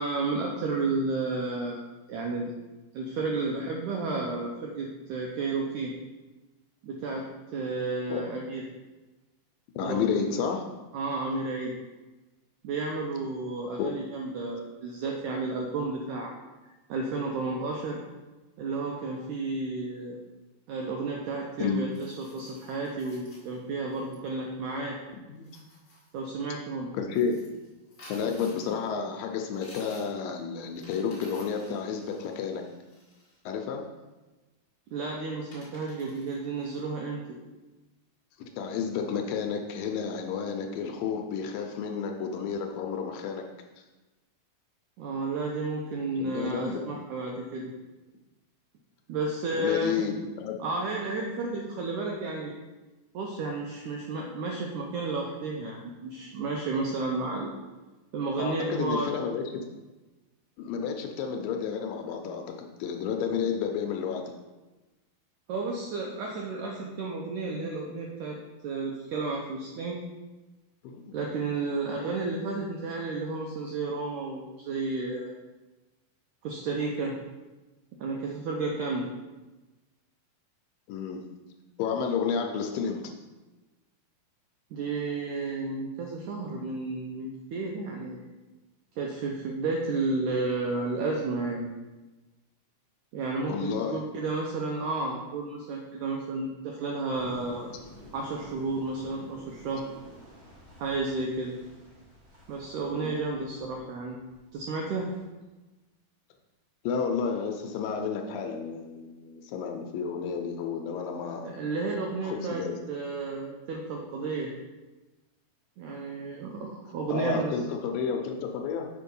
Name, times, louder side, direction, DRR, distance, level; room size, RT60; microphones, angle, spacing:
voice 1, 0.0-1.8 2.1-2.5 2.9-5.9 6.8-7.3 7.5-8.6 9.9-10.1 10.9-11.7 12.6-16.3 16.9-18.0 18.6-20.2 20.7-25.0 26.1-26.9 34.9-37.2 45.0-47.7 49.1-50.1 50.6-52.5 53.1-57.5 58.1-59.1 65.5-68.4 68.6-70.0 71.1-75.3 76.4-77.2 78.0-79.1 84.7-88.2 89.0-91.7 93.1-97.7 98.1-99.8 100.8-101.5 102.5-104.2 104.5-105.1 111.4-114.5 115.8-117.6, right 3 dB, 85° right, 0 dB, 1.7 m, -32 dB
voice 2, 9.8-10.7 13.8-13.9 21.6-21.9 25.1-25.5 27.0-27.4 28.1-32.6 33.5-33.9 38.4-43.5 46.2-46.9 49.5-50.6 58.4-59.6 60.6-62.4 62.8-64.2 70.8-71.2 80.9-81.2 81.8-83.0 93.5-94.0 102.9-103.2 106.8-111.6 112.2-112.7 117.1-118.9, left 6 dB, 80° left, 3 dB, 2.2 m, -31 dB
sound 1, 21.9-24.2 25.4-26.2 27.1-28.9 29.5-30.3 30.7-33.4 34.9-35.0 35.5-36.8, left 1 dB, 40° left, 1.7 m, -53 dB
sound 2, 97.1-105.2, equal, 40° right, 1.5 m, -51 dB
6.8 x 4.6 x 5.3 m, 1.2 s
omnidirectional pair, 4.3 m